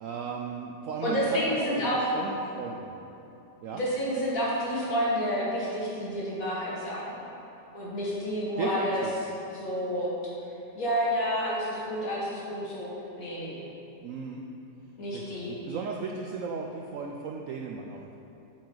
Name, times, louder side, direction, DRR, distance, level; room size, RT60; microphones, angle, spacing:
voice 1, 0.0-2.9 3.6-3.8 8.6-9.1 14.0-14.4 15.1-18.2, right 5 dB, 70° right, 1 dB, 0.8 m, -36 dB
voice 2, 1.0-2.1 3.7-7.1 7.7-10.1 10.8-12.9 13.2-13.6 15.0-15.5, equal, 55° left, -6 dB, 2.2 m, -29 dB
8.6 x 7.5 x 4.0 m, 2.9 s
omnidirectional pair, 1.8 m